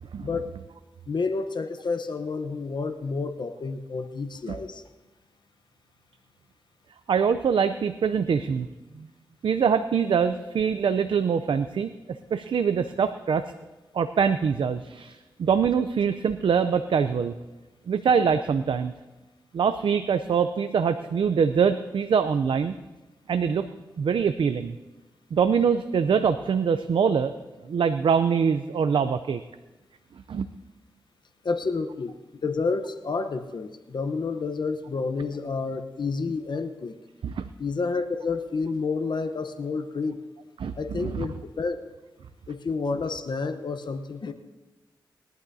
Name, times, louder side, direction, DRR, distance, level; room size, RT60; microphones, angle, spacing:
voice 1, 1.1-4.8 31.4-32.1 32.4-37.0 37.6-40.2 40.7-41.8 42.5-44.3, left 4 dB, 60° left, 7 dB, 0.9 m, -29 dB
voice 2, 7.1-8.7 8.9-9.1 9.4-11.9 12.3-13.5 13.9-17.3 17.9-18.9 19.5-22.7 23.3-23.7 24.0-24.8 25.3-27.3 27.6-29.4 30.3-30.5 37.2-37.5 40.6-41.3, right 6 dB, 75° right, 10 dB, 0.5 m, -24 dB
21.0 x 12.0 x 2.7 m, 1.1 s
cardioid pair, 60°, 9 cm